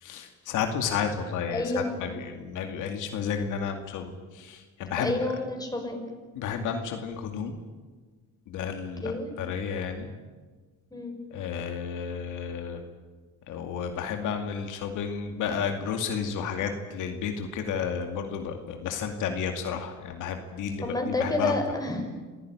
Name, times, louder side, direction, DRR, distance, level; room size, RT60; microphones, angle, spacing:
voice 1, 0.0-5.3 6.3-7.6 8.5-10.1 11.3-12.8 13.5-21.5, left 7 dB, 90° left, 5 dB, 2.4 m, -32 dB
voice 2, 1.5-2.1 4.9-6.0 9.0-9.3 10.9-11.1 20.8-22.0, left 2 dB, 10° left, 3 dB, 5.9 m, -29 dB
26.5 x 15.5 x 9.8 m, 1.4 s
cardioid pair, 90°, 30 cm